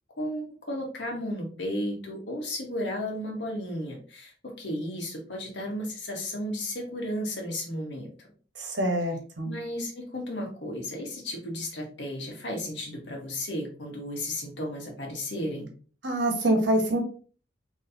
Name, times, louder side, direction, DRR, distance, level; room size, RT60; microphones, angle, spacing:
voice 1, 0.2-8.3 9.4-15.7, left 1 dB, 75° left, 0 dB, 1.4 m, -34 dB
voice 2, 8.6-9.6 16.0-17.0, right 1 dB, 85° right, 4 dB, 1.1 m, -25 dB
4.1 x 3.1 x 2.8 m, 0.40 s
head